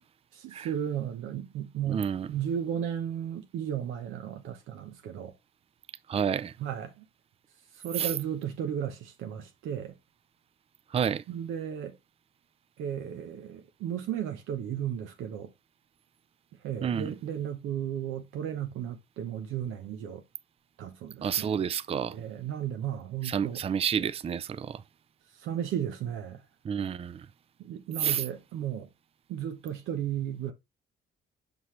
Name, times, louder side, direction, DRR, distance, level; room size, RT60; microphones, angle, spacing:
voice 1, 0.3-5.3 6.6-7.0 7.7-9.9 11.3-12.0 12.8-15.5 16.6-20.2 20.8-21.5 22.1-23.6 25.3-26.4 27.6-28.9 29.3-30.5, right 9 dB, 90° right, 0.9 m, -34 dB
voice 2, 1.9-2.3 6.1-6.6 8.0-8.1 10.9-11.2 16.8-17.1 21.2-22.2 23.2-24.8 26.6-27.3 28.0-28.2, right 8 dB, 30° right, 0.4 m, -29 dB
6.0 x 5.4 x 3.1 m
cardioid pair, 90°, 20 cm